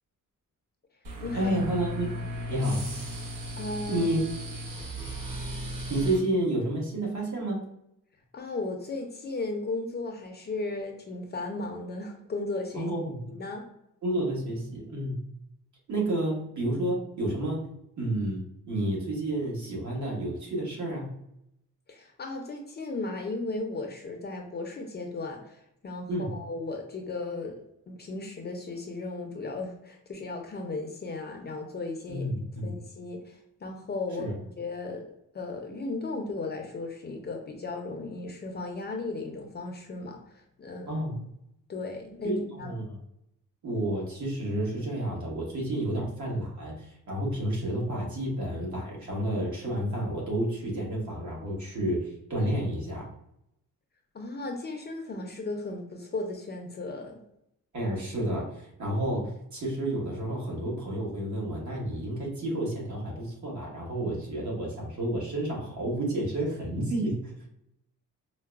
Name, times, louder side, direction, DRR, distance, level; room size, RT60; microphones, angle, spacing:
sound 1, 1.0-6.2, equal, 75° right, 0.8 m, -36 dB
voice 1, 1.3-2.1 2.5-2.9 3.9-4.2 5.9-7.7 12.7-13.3 14.0-15.2 15.9-17.7 18.0-21.1 26.1-26.3 32.1-32.7 34.2-34.3 40.9-41.2 42.2-43.0 43.6-53.1 57.7-67.5, right 1 dB, 60° right, -2 dB, 1.2 m, -30 dB
voice 2, 3.6-4.0 8.3-12.9 13.3-13.7 21.9-27.6 27.9-32.3 32.6-35.1 35.3-41.0 41.7-42.7 54.1-57.2, left 3 dB, 30° left, 3 dB, 0.4 m, -35 dB
4.6 x 2.0 x 2.2 m, 0.79 s
wide cardioid pair, 155°, 33 cm